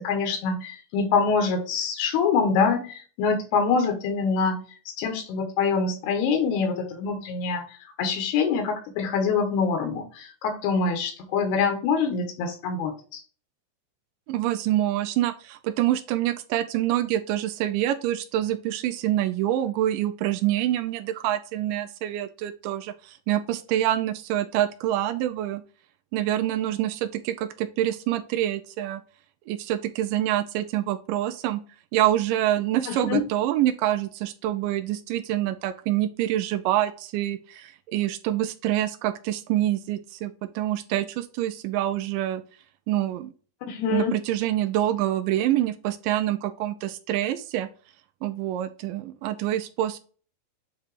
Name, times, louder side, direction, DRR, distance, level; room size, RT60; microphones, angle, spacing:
voice 1, 0.0-4.6 4.9-7.6 8.0-13.2 32.9-33.2 43.7-44.2, left 5 dB, 85° left, 5 dB, 3.4 m, -25 dB
voice 2, 14.3-25.6 26.1-29.0 29.5-31.6 31.9-42.4 42.9-43.3 43.9-47.7 48.2-50.0, right 13 dB, 90° right, 8 dB, 1.9 m, -26 dB
8.8 x 3.0 x 4.9 m, 0.39 s
omnidirectional pair, 4.5 m